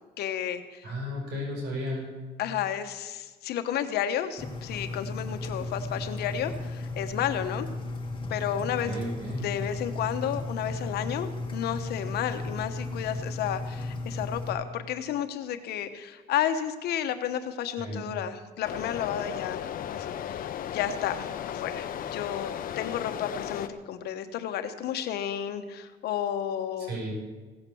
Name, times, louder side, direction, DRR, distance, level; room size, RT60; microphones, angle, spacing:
voice 1, 0.2-0.9 2.4-7.7 8.3-8.9 9.4-19.7 19.9-26.9, left 10 dB, 70° left, 8 dB, 1.2 m, -32 dB
voice 2, 0.8-2.2 8.8-9.5 17.8-18.1 26.8-27.1, equal, 80° right, -2 dB, 6.0 m, -34 dB
Engine, 4.4-14.5, left 2 dB, 30° left, 2.1 m, -35 dB
sound 1, 18.6-23.7, left 10 dB, 55° left, 0.9 m, -35 dB
16.5 x 8.1 x 7.0 m, 1.3 s
cardioid pair, 110°, 17 cm